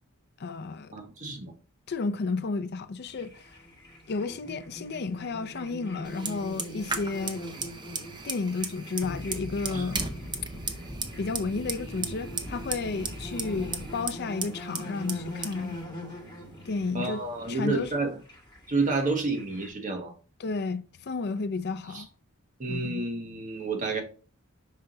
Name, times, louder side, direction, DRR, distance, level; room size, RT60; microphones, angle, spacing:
voice 1, 0.4-0.9 1.9-3.4 4.1-7.5 8.2-10.0 11.2-15.8 16.7-17.2 17.5-18.0 20.4-22.1 22.7-23.1, left 4 dB, 50° left, 0.5 m, -32 dB
voice 2, 0.9-1.5 9.7-9.9 13.5-13.7 16.9-18.1 18.7-20.1 21.9-22.0 22.6-24.0, right 3 dB, 40° right, 1.2 m, -30 dB
sound 1, 3.1-19.7, left 1 dB, 20° left, 1.9 m, -44 dB
Fire, 6.0-17.9, right 4 dB, 20° right, 0.6 m, -37 dB
sound 2, 9.0-13.0, left 1 dB, 90° left, 0.8 m, -44 dB
5.7 x 4.4 x 3.8 m
head